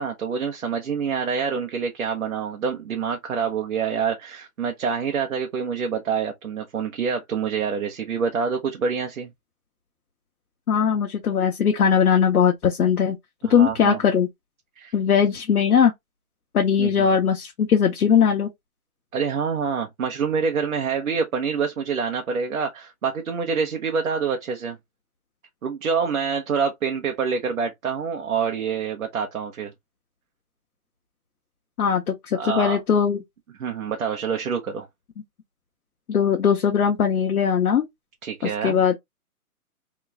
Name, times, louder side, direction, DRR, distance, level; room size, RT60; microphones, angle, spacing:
voice 1, 0.0-9.3 13.4-14.0 14.8-14.9 16.8-17.1 19.1-24.8 25.6-29.7 32.3-32.8 33.6-34.9 38.2-38.8, right 6 dB, 65° right, 0.9 m, -26 dB
voice 2, 10.7-13.2 13.5-14.3 14.9-15.9 16.5-18.5 31.8-33.2 36.1-37.8 38.4-39.0, left 7 dB, 85° left, 0.9 m, -20 dB
3.0 x 2.3 x 3.3 m
hypercardioid pair, 175°, 43 cm